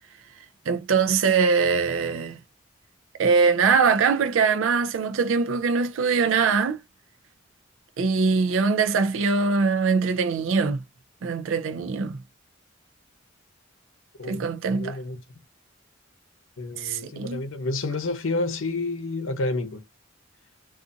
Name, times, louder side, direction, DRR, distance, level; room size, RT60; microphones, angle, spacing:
voice 1, 0.7-2.4 3.2-6.8 8.0-10.8 11.2-12.2 14.3-15.0 16.8-17.4, right 5 dB, 80° right, 0.4 m, -22 dB
voice 2, 14.7-15.2 16.6-19.8, left 2 dB, 80° left, 0.7 m, -29 dB
2.5 x 2.4 x 2.6 m
head